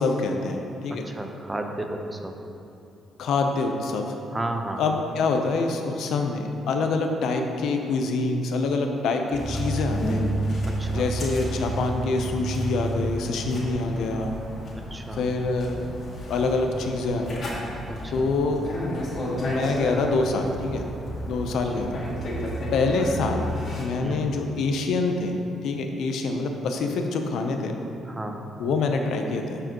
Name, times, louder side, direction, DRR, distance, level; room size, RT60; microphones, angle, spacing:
voice 1, 0.0-1.1 3.2-4.2 4.8-10.2 10.9-14.3 15.1-15.9 16.3-17.4 18.1-18.6 19.4-20.8 21.3-22.0 22.7-23.5 23.8-25.3 25.6-27.7 28.6-29.6, left 3 dB, 75° left, 4 dB, 0.7 m, -26 dB
voice 2, 0.9-2.3 4.3-4.8 10.7-11.1 14.9-15.2 17.9-18.3 24.0-24.3 28.1-28.4, right 2 dB, 15° right, 4 dB, 0.8 m, -33 dB
sound 1, 9.3-23.8, right 1 dB, 55° left, 1.9 m, -31 dB
13.5 x 4.8 x 3.0 m, 2.7 s
cardioid pair, 90°, 0 cm